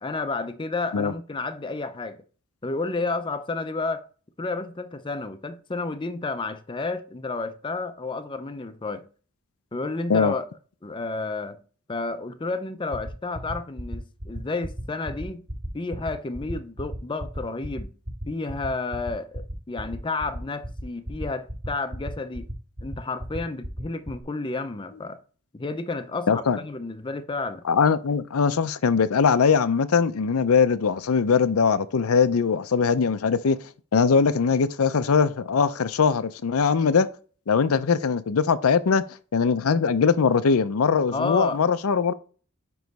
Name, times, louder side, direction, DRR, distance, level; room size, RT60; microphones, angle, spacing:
voice 1, 0.0-2.2 2.6-4.0 4.4-9.0 9.7-10.5 10.8-11.6 11.9-15.4 15.7-17.9 18.3-22.5 22.8-25.2 25.5-27.6 41.1-41.6, left 3 dB, 20° left, 0.5 m, -31 dB
sound 1, 12.9-24.2, equal, 45° right, 3.9 m, -33 dB
voice 2, 26.3-26.6 27.7-33.6 33.9-37.1 37.5-39.0 39.3-42.1, left 5 dB, 85° left, 0.5 m, -21 dB
9.3 x 3.1 x 5.2 m
head